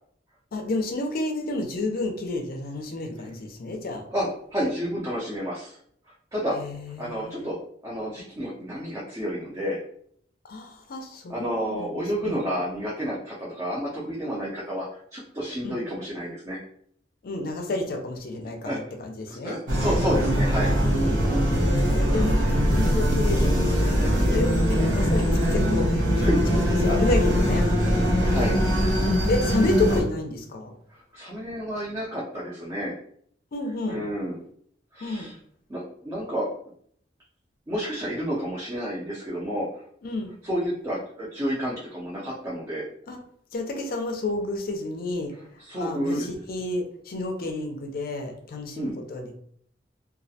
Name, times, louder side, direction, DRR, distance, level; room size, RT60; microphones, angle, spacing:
voice 1, 0.5-4.0 6.6-7.5 10.4-12.4 15.6-15.8 17.2-19.6 20.8-27.7 28.2-28.6 29.3-30.8 33.5-34.0 35.0-35.3 40.0-40.3 43.1-43.2 43.5-45.3 45.7-49.3, left 2 dB, 55° left, 4 dB, 0.4 m, -30 dB
voice 2, 4.1-5.8 6.3-6.6 7.0-7.6 7.8-9.8 11.3-14.9 15.1-16.6 18.6-18.8 19.3-20.7 21.9-22.5 26.2-26.4 28.3-28.6 30.9-32.9 33.9-34.4 34.9-35.3 35.7-36.5 37.7-39.7 40.4-42.8 45.6-46.3 48.8-48.9, equal, 20° right, -7 dB, 0.4 m, -30 dB
sound 1, 19.7-30.0, equal, 90° right, 0.7 m, -22 dB
2.3 x 2.0 x 2.7 m, 0.64 s
head